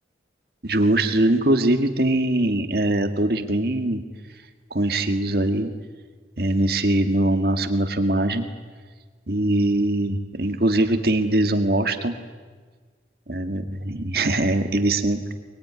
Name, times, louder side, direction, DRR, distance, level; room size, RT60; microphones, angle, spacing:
voice 1, 0.6-4.0 4.7-5.7 6.4-8.5 9.3-12.2 13.3-15.3, right 1 dB, 55° right, 7 dB, 1.9 m, -22 dB
23.5 x 21.5 x 9.7 m, 1.5 s
head